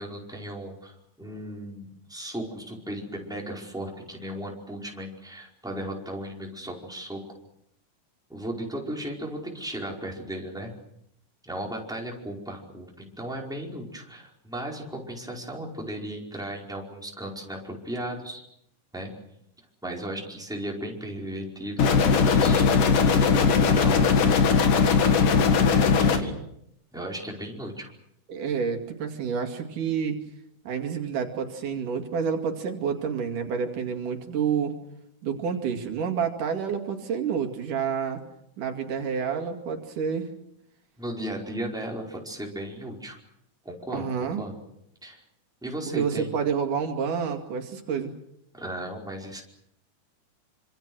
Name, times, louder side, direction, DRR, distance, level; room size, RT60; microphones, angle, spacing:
voice 1, 0.0-7.2 8.3-10.7 11.4-18.4 18.9-19.1 19.8-21.9 22.2-22.6 23.1-24.5 26.0-26.5 26.9-27.9 41.0-43.2 43.6-44.1 44.4-44.5 45.0-45.2 45.6-46.3 48.5-49.4, right 1 dB, ahead, -1 dB, 4.7 m, -36 dB
sound 1, 21.8-26.2, left 5 dB, 85° left, 3.6 m, -19 dB
voice 2, 28.3-30.2 30.7-34.7 35.2-38.2 38.6-40.3 43.9-44.4 45.9-48.1, right 6 dB, 85° right, 4 dB, 4.0 m, -29 dB
26.5 x 26.0 x 6.3 m, 0.77 s
omnidirectional pair, 3.6 m